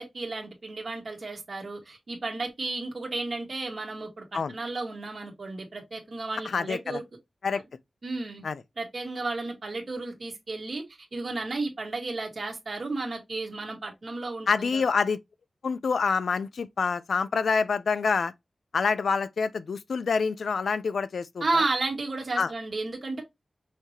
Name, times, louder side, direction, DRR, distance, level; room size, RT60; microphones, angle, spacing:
voice 1, 0.0-7.0 8.0-8.4 8.8-14.8 21.4-23.2, right 3 dB, 50° right, 1.7 m, -33 dB
voice 2, 6.4-7.0 7.4-7.6 8.4-8.6 14.5-15.2 15.6-18.3 18.7-21.6 22.4-22.5, left 5 dB, 85° left, 0.4 m, -27 dB
5.7 x 3.2 x 2.9 m
wide cardioid pair, 130°, 0 cm